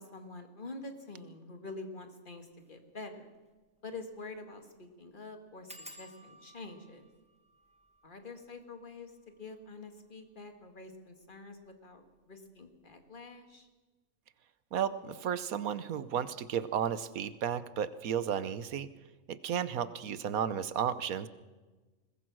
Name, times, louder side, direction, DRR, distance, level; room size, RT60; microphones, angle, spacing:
voice 1, 0.0-3.3 3.8-7.0 8.0-13.7, left 3 dB, 35° left, 6 dB, 2.1 m, -47 dB
sound 1, 2.5-2.7 3.1-3.2 3.4-3.5 4.1-4.4 4.6-4.7 5.7-10.9 11.6-12.1 12.5-12.8 13.1-13.2, equal, 5° right, 1.7 m, -56 dB
voice 2, 14.7-18.9 19.3-21.3, right 8 dB, 80° right, 15 dB, 1.3 m, -33 dB
21.5 x 20.0 x 6.2 m, 1.2 s
omnidirectional pair, 1.5 m